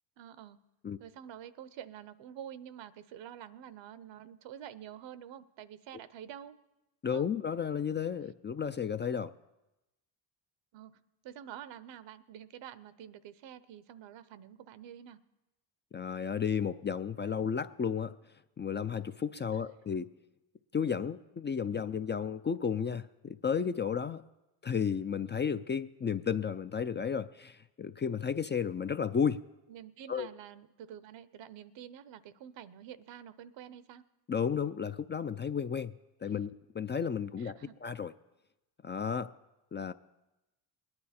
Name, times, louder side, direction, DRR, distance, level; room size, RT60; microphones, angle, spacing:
voice 1, 0.2-0.6 1.0-6.6 7.0-7.3 10.7-10.9 11.2-15.2 19.5-19.7 29.7-34.0 37.4-37.8, right 10 dB, 65° right, 16 dB, 0.8 m, -48 dB
voice 2, 7.0-9.3 15.9-18.1 18.6-20.1 20.7-24.2 24.6-29.4 30.1-30.3 34.3-35.9 36.2-37.5 37.8-38.1 38.8-39.3 39.7-39.9, left 7 dB, 25° left, 11 dB, 0.4 m, -33 dB
21.0 x 9.7 x 4.3 m, 0.98 s
supercardioid pair, 65°, 48 cm